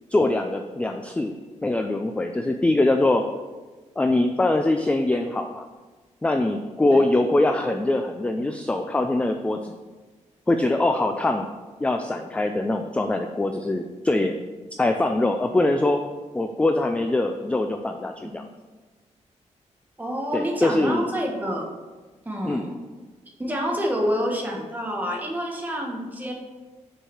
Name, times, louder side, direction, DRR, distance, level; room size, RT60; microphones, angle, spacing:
voice 1, 0.1-1.3 1.6-3.2 4.0-5.7 6.2-9.7 10.5-11.5 11.8-14.4 14.8-16.0 16.3-18.5 20.3-21.1 22.5-22.7, left 2 dB, 10° left, 6 dB, 0.3 m, -23 dB
voice 2, 20.0-21.7 22.2-22.8 23.4-26.3, equal, 15° right, 0 dB, 1.3 m, -28 dB
6.4 x 4.8 x 6.1 m, 1.3 s
wide cardioid pair, 155°, 13 cm